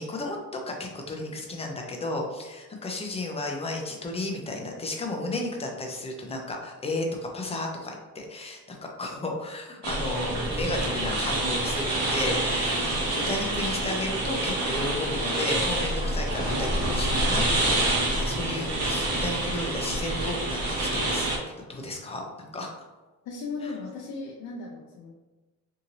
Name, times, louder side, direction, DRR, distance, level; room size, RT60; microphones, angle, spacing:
voice 1, 0.0-17.8 18.1-21.3 21.7-22.2 22.5-22.7 23.6-23.7, left 2 dB, 20° left, 1 dB, 0.5 m, -33 dB
sound 1, 9.8-21.4, right 1 dB, 55° right, 0.9 m, -27 dB
voice 2, 23.2-25.1, left 4 dB, 65° left, -1 dB, 0.5 m, -36 dB
2.9 x 2.7 x 2.6 m, 1.2 s
cardioid pair, 105°, 31 cm